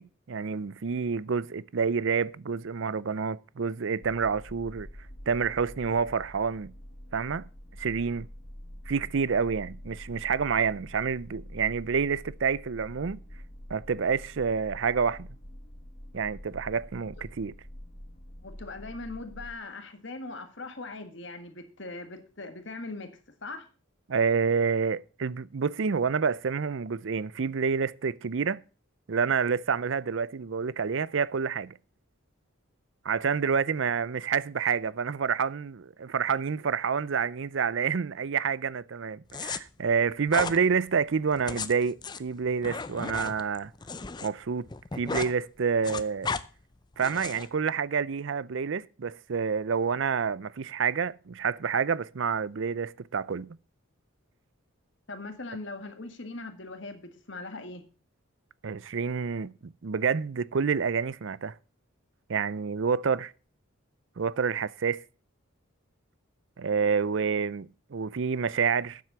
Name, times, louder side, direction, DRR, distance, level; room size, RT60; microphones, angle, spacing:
voice 1, 0.0-4.9 5.3-6.7 7.1-7.4 7.8-8.3 8.9-13.2 13.7-15.3 16.1-17.5 24.1-28.6 29.1-31.7 33.0-43.7 44.2-44.7 44.9-46.3 47.0-53.6 58.6-61.6 62.3-63.3 64.2-65.0 66.6-69.0, right 6 dB, 60° right, 0.5 m, -28 dB
sound 1, 4.0-19.5, equal, 35° left, 1.6 m, -46 dB
voice 2, 18.4-23.1 23.4-23.6 55.1-57.8, left 3 dB, 55° left, 1.6 m, -40 dB
sound 2, 39.3-39.6 40.3-40.6 41.3-44.3 44.6-45.3 45.6-46.4 47.0-47.5, left 4 dB, 20° left, 0.4 m, -34 dB
9.3 x 7.6 x 6.8 m
head